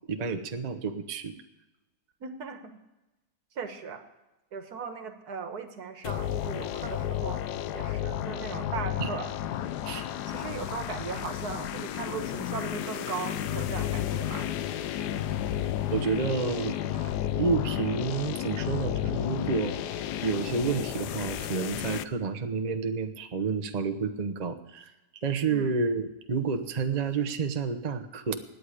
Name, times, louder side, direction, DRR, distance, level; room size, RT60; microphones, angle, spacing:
voice 1, 0.1-1.3 9.0-9.1 9.8-10.1 15.9-17.1 17.4-20.0 20.2-24.9 25.2-28.4, right 5 dB, 35° right, 7 dB, 0.7 m, -30 dB
voice 2, 2.2-2.8 3.6-4.0 4.5-9.3 10.3-14.5 25.5-25.7, right 5 dB, 65° right, 8 dB, 1.8 m, -38 dB
sound 1, 6.0-22.0, left 11 dB, 75° left, 1.2 m, -32 dB
17.0 x 9.9 x 5.0 m, 1.0 s
omnidirectional pair, 1.8 m